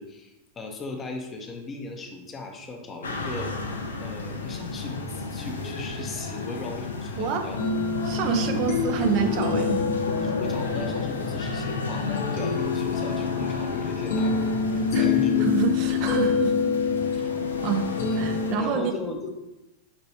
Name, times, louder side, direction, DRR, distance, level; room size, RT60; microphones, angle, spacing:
voice 1, 0.0-3.6 4.0-7.6 8.4-8.6 9.2-9.8 10.1-15.5 18.6-19.3, left 3 dB, 20° left, 3 dB, 0.7 m, -37 dB
sound 1, 3.0-18.6, left 3 dB, 70° left, 0.5 m, -32 dB
sound 2, 7.6-18.7, left 6 dB, 55° left, 0.9 m, -27 dB
voice 2, 8.0-9.8 14.9-15.1 15.4-16.5 17.1-17.2 17.6-17.8 18.1-18.9, right 7 dB, 45° right, 5 dB, 0.5 m, -27 dB
6.0 x 3.0 x 2.8 m, 0.96 s
figure-of-eight pair, 90°, 0 cm